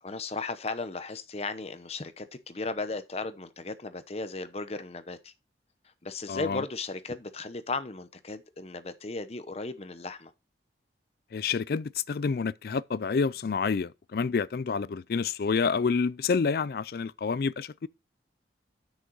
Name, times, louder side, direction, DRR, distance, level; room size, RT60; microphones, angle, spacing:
voice 1, 0.0-5.3 6.0-10.3, left 3 dB, 35° left, 0.8 m, -36 dB
voice 2, 6.3-6.6 11.3-17.9, left 5 dB, 55° left, 0.4 m, -28 dB
7.6 x 6.6 x 4.7 m
head